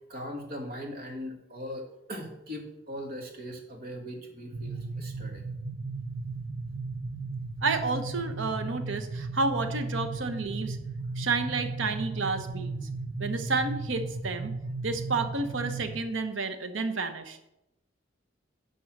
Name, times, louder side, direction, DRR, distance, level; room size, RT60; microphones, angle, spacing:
voice 1, 0.1-5.4, equal, 50° right, 1 dB, 1.9 m, -40 dB
sound 1, 4.5-16.0, right 3 dB, 35° right, 0.6 m, -36 dB
voice 2, 7.6-10.8 11.2-12.8 13.2-14.5 14.8-17.4, right 3 dB, 75° right, 8 dB, 0.9 m, -30 dB
10.5 x 3.9 x 6.0 m, 0.88 s
head